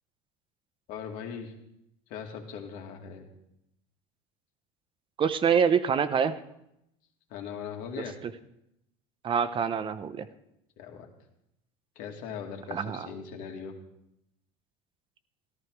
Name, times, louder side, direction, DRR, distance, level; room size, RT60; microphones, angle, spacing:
voice 1, 0.9-1.5 2.1-3.3 7.3-8.2 10.8-11.1 12.0-13.7, left 7 dB, 65° left, 2 dB, 2.5 m, -39 dB
voice 2, 5.2-6.3 8.2-8.3 9.2-10.3 12.7-13.1, right 7 dB, 35° right, 12 dB, 0.9 m, -25 dB
14.5 x 13.0 x 4.8 m, 0.81 s
supercardioid pair, 110°, 15 cm